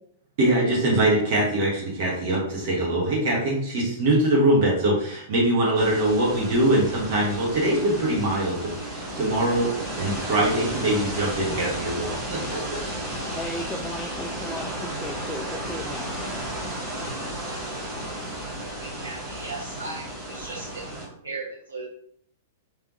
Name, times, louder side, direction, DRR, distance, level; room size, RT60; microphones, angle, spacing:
voice 1, 0.4-12.8, right 1 dB, 50° right, -4 dB, 1.4 m, -23 dB
sound 1, 5.7-21.1, right 1 dB, 25° right, 1.5 m, -33 dB
voice 2, 13.3-16.1, left 1 dB, 10° left, -1 dB, 0.4 m, -36 dB
voice 3, 18.6-21.0 21.2-21.4 21.7-21.8, right 3 dB, 75° right, -4 dB, 0.7 m, -37 dB
3.5 x 3.3 x 3.0 m, 0.66 s
figure-of-eight pair, 100°, 0 cm